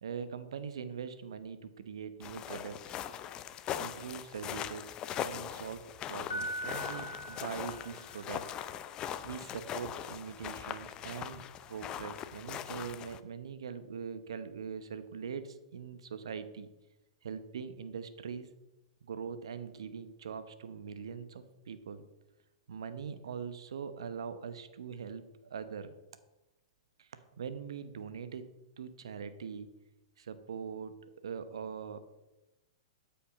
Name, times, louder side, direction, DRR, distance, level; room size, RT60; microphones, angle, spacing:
voice 1, 0.0-3.0 3.7-5.0 5.2-8.4 9.2-16.7 17.2-18.5 19.0-22.1 22.7-25.9 27.0-29.7 30.2-32.0, right 6 dB, 70° right, 11 dB, 0.9 m, -42 dB
sound 1, 2.2-13.2, left 10 dB, 30° left, 0.6 m, -41 dB
Piano, 6.3-8.4, equal, 80° left, 2.2 m, -41 dB
13.0 x 5.6 x 5.1 m, 1.0 s
hypercardioid pair, 110°, 3 cm